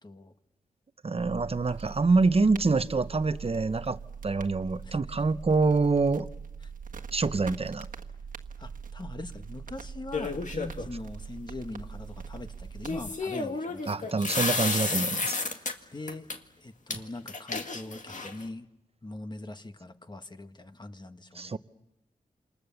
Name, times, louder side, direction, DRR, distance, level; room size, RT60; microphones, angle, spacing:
voice 1, 0.0-0.3 4.8-5.0 6.6-6.7 8.6-14.2 15.9-16.3 16.6-18.7 19.0-21.6, left 2 dB, 30° left, 8 dB, 1.4 m, -42 dB
voice 2, 1.0-4.0 4.2-6.3 7.1-7.9 13.9-15.4 21.3-21.6, right 3 dB, 40° right, 12 dB, 0.9 m, -26 dB
sound 1, 1.2-13.1, right 6 dB, 60° right, 1.5 m, -42 dB
sound 2, 10.1-10.9 12.8-15.7 16.1-16.4 16.9-17.0 17.3-18.5, left 3 dB, 55° left, 1.9 m, -31 dB
27.5 x 26.5 x 7.1 m, 0.88 s
wide cardioid pair, 85°, 15 cm